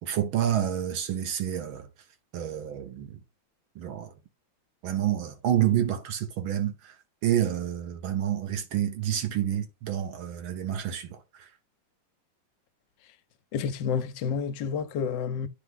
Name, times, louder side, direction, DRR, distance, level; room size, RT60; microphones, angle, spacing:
voice 1, 0.0-1.9 2.3-3.2 3.8-4.1 4.8-6.9 7.2-11.5, right 11 dB, 80° right, 1.9 m, -28 dB
voice 2, 13.5-15.5, left 6 dB, 70° left, 1.3 m, -29 dB
9.6 x 3.5 x 3.7 m
omnidirectional pair, 2.2 m